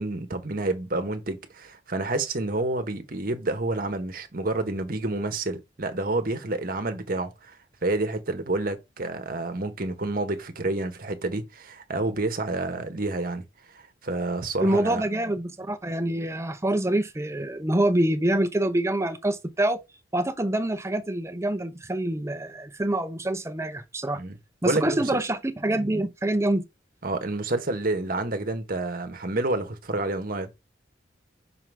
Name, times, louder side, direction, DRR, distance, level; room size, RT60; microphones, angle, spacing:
voice 1, 0.0-13.4 13.7-15.0 24.1-24.4 24.6-25.0 27.0-30.5, right 2 dB, 50° right, 1.1 m, -29 dB
voice 2, 14.6-19.8 20.1-24.2 24.6-26.6, right 1 dB, 15° right, 0.7 m, -26 dB
5.9 x 3.9 x 4.6 m
head